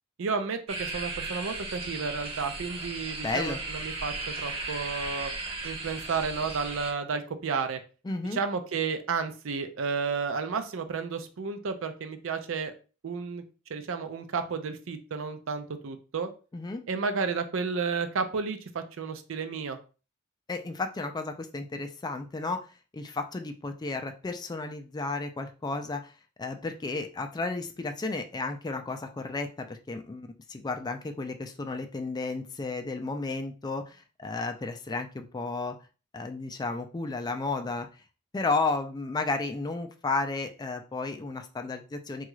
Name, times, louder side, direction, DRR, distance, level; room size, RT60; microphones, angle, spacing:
voice 1, 0.2-5.3 5.6-7.8 8.3-12.7 13.0-13.4 13.7-16.3 16.9-19.8, right 5 dB, 70° right, 8 dB, 0.5 m, -32 dB
sound 1, 0.7-6.9, right 3 dB, 30° right, 0.8 m, -36 dB
voice 2, 3.2-3.6 8.0-8.4 16.5-16.9 20.5-22.7 22.9-26.1 26.4-35.8 36.1-37.9 38.3-42.3, left 3 dB, 20° left, 6 dB, 0.3 m, -33 dB
3.6 x 2.3 x 3.1 m, 0.35 s
head